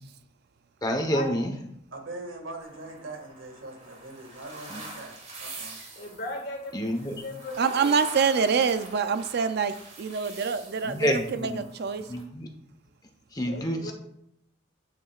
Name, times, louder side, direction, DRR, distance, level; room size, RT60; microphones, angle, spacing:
voice 1, 0.8-1.5 4.7-4.8 6.7-7.1 10.8-11.6 12.1-12.5 13.3-13.9, equal, 20° left, 4 dB, 1.0 m, -28 dB
voice 2, 1.9-5.8, right 2 dB, 80° right, 3 dB, 1.9 m, -42 dB
sound 1, 2.6-12.2, right 2 dB, 35° right, 2.2 m, -45 dB
voice 3, 6.0-8.0 13.4-13.9, left 2 dB, 60° left, 2 dB, 1.8 m, -38 dB
voice 4, 7.6-12.1, right 5 dB, 55° right, 10 dB, 0.4 m, -26 dB
9.3 x 9.0 x 2.4 m, 0.75 s
head